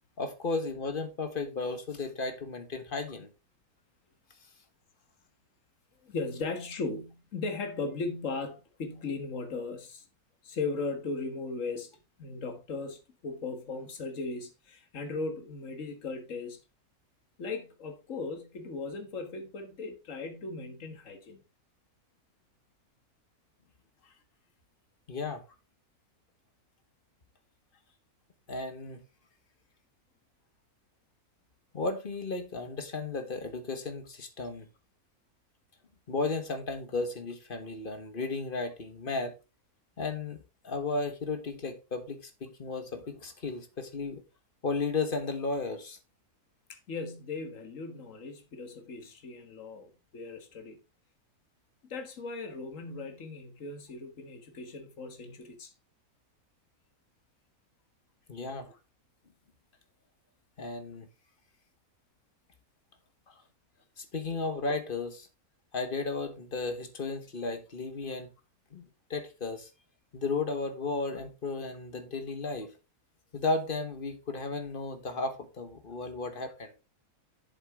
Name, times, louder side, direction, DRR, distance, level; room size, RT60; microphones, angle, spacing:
voice 1, 0.2-3.3 25.1-25.4 28.5-29.0 31.7-34.7 36.1-39.3 40.0-40.4 40.6-44.2 44.6-46.0 58.3-58.7 60.6-61.1 64.0-65.3 65.7-68.3 68.7-69.7 70.1-72.7 73.3-76.7, left 3 dB, 35° left, 1.4 m, -34 dB
voice 2, 6.0-10.0 10.4-11.9 12.2-16.6 17.4-21.4 24.0-24.2 46.7-50.8 51.8-55.7 58.7-58.8 63.3-63.4, left 3 dB, 60° left, 1.9 m, -37 dB
7.9 x 7.4 x 3.6 m
omnidirectional pair, 1.6 m